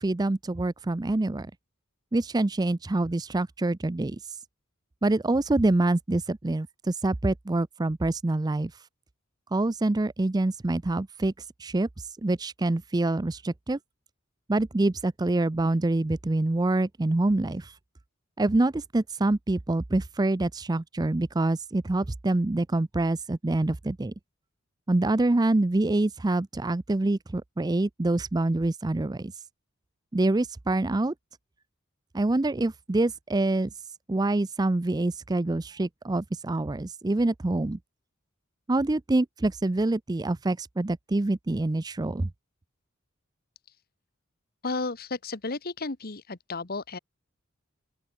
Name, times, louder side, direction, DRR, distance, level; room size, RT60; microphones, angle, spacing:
voice 1, 0.0-1.5 2.1-4.2 5.0-8.7 9.5-11.3 11.6-11.9 12.2-13.8 14.5-17.7 18.4-24.1 24.9-29.3 30.1-31.1 32.1-33.7 34.1-37.8 38.7-42.3, right 2 dB, 20° right, 0.5 m, -26 dB
voice 2, 44.6-47.0, left 3 dB, 45° left, 1.4 m, -33 dB
open air
head